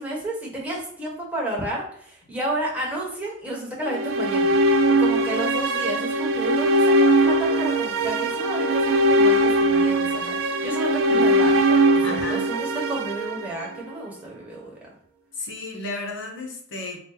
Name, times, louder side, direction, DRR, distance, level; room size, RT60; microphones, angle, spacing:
voice 1, 0.0-4.6 4.9-14.8, right 1 dB, 5° right, -4 dB, 1.1 m, -32 dB
sound 1, 3.8-14.0, right 1 dB, 85° right, 0.4 m, -21 dB
voice 2, 11.1-11.7 12.0-12.5 15.3-17.0, left 2 dB, 65° left, 2 dB, 0.8 m, -33 dB
4.2 x 2.1 x 3.9 m, 0.63 s
head